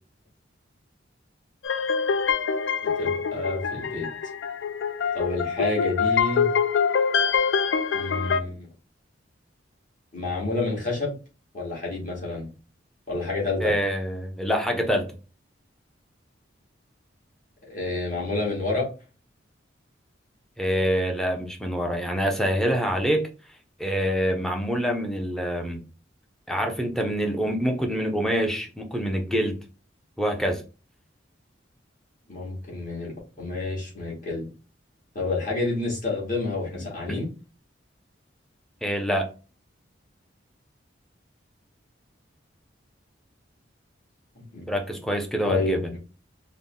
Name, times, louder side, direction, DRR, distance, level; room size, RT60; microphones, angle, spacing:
sound 1, 1.6-8.4, left 6 dB, 75° left, 0.4 m, -25 dB
voice 1, 3.0-4.1 5.1-6.5 7.9-8.7 10.1-11.1 11.5-12.5 13.1-13.7 17.7-18.9 32.3-34.5 35.2-37.3 44.4-44.7 45.5-46.0, left 2 dB, 45° left, -4 dB, 1.8 m, -29 dB
voice 2, 13.6-15.1 20.6-23.2 23.8-25.8 26.5-29.6 30.2-30.6 36.7-36.8 37.1-37.2 38.8-39.3 44.7-45.8, equal, ahead, 3 dB, 0.5 m, -26 dB
3.8 x 2.1 x 3.7 m, 0.34 s
head